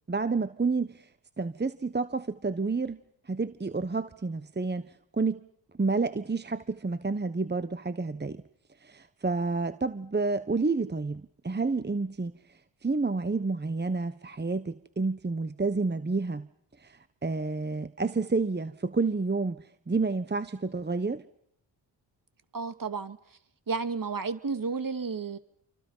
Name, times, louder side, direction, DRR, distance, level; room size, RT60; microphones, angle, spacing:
voice 1, 0.1-1.0 1.4-3.0 3.3-4.9 5.1-5.4 5.8-8.4 8.8-12.3 12.8-16.5 16.8-21.2, right 3 dB, 20° right, 12 dB, 1.3 m, -29 dB
voice 2, 22.5-23.2 23.7-25.4, right 4 dB, 45° right, 10 dB, 2.4 m, -32 dB
28.5 x 24.5 x 5.7 m, 0.70 s
cardioid pair, 55°, 45 cm